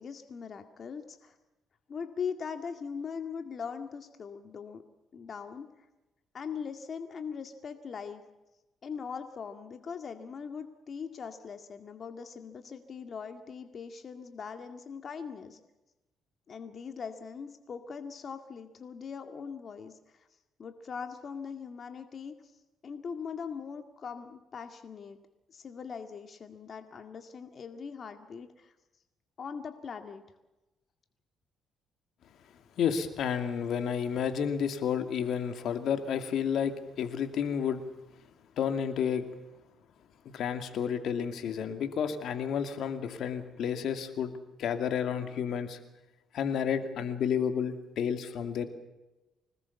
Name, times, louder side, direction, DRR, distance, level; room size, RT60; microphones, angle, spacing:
voice 1, 0.0-1.4 1.9-4.8 5.1-5.9 6.3-8.2 8.8-15.6 16.5-20.3 20.6-22.5 22.8-25.2 25.5-28.7 29.4-30.2, left 6 dB, 50° left, 7 dB, 2.1 m, -41 dB
voice 2, 32.8-37.8 38.6-39.3 40.2-44.3 44.6-45.8 46.3-48.6, left 7 dB, 75° left, 8 dB, 2.5 m, -31 dB
26.0 x 19.5 x 7.2 m, 1.0 s
cardioid pair, 90°, 0 cm